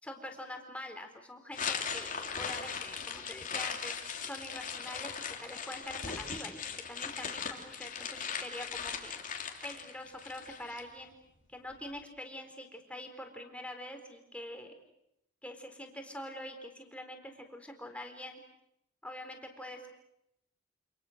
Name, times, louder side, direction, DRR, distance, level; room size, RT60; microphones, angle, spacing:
voice 1, 0.0-3.9 4.2-9.2 9.6-11.1 11.5-14.7 15.4-18.4 19.0-19.9, left 1 dB, 5° left, 4 dB, 4.0 m, -45 dB
sound 1, 1.5-10.8, left 6 dB, 45° left, 3.0 m, -39 dB
29.0 x 27.5 x 6.6 m, 0.81 s
head